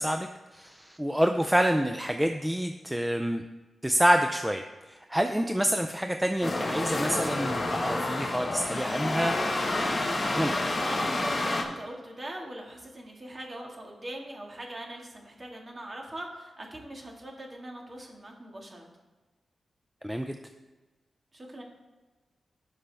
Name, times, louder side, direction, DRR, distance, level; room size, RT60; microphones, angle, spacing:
voice 1, 0.0-3.4 3.8-9.4 10.3-10.6 20.0-20.4, equal, 5° right, 6 dB, 0.4 m, -27 dB
sound 1, 6.4-11.6, left 2 dB, 35° left, 1.5 m, -29 dB
voice 2, 10.8-18.9 21.3-21.6, right 1 dB, 30° right, 0 dB, 2.0 m, -41 dB
16.5 x 5.6 x 3.4 m, 1.2 s
wide cardioid pair, 115°, 0 cm